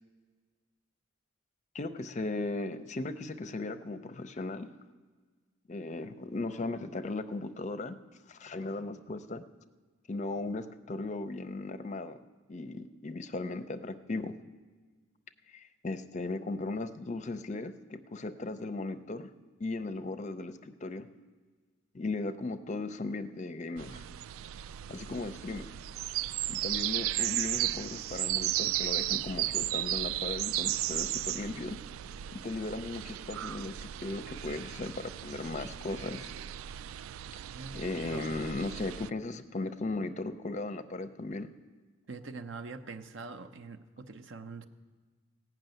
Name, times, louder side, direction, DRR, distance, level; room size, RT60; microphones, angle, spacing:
voice 1, 1.7-4.7 5.7-8.0 8.3-9.4 10.1-12.2 12.5-14.3 15.5-19.3 19.6-21.1 21.9-24.0 24.9-25.7 26.5-31.8 32.3-36.3 37.7-41.5, left 2 dB, 35° left, 10 dB, 0.5 m, -37 dB
sound 1, 23.8-39.1, right 14 dB, 85° right, 0.3 m, -35 dB
voice 2, 37.5-38.4 42.1-44.6, right 4 dB, 65° right, 8 dB, 0.7 m, -44 dB
16.5 x 6.0 x 9.0 m, 1.4 s
head